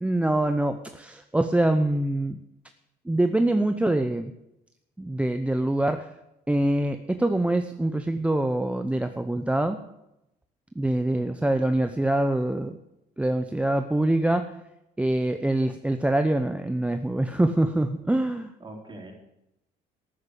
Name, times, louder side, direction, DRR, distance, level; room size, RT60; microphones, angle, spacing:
voice 1, 0.0-2.4 3.0-4.3 5.0-6.1 6.5-9.8 10.8-12.8 13.2-14.5 15.0-18.5, right 1 dB, 5° right, 8 dB, 0.7 m, -24 dB
voice 2, 11.1-11.4 18.6-19.1, right 1 dB, 30° right, 1 dB, 4.2 m, -43 dB
12.5 x 9.6 x 8.2 m, 0.88 s
cardioid pair, 110°, 17 cm